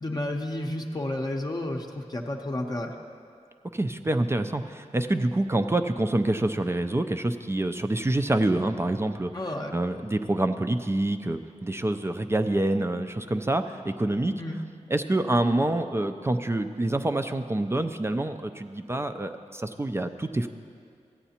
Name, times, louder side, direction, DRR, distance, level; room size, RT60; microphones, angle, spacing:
voice 1, 0.0-2.9 9.3-9.7 14.4-14.6, left 1 dB, 35° left, 1 dB, 0.7 m, -31 dB
voice 2, 3.7-9.3 9.7-14.3 14.9-20.5, right 1 dB, 20° right, 7 dB, 0.4 m, -26 dB
15.0 x 9.0 x 2.9 m, 2.3 s
wide cardioid pair, 70°, 13 cm